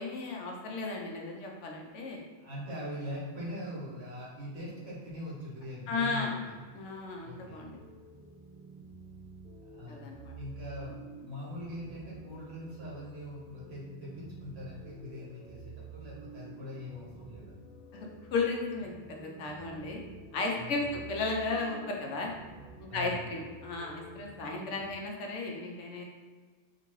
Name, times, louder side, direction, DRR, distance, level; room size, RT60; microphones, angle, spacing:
voice 1, 0.0-2.2 5.9-6.3 6.7-7.8 9.9-10.3 17.9-20.0 20.3-22.3 22.8-26.0, left 3 dB, 75° left, 1 dB, 0.9 m, -35 dB
voice 2, 2.4-6.6 7.2-7.7 9.7-10.1 10.4-11.0 11.2-17.5 20.6-21.0 22.9-23.3, left 1 dB, 60° right, -5 dB, 1.3 m, -42 dB
sound 1, 6.7-24.9, right 3 dB, 35° left, 1.0 m, -50 dB
3.8 x 2.6 x 3.0 m, 1.5 s
omnidirectional pair, 1.2 m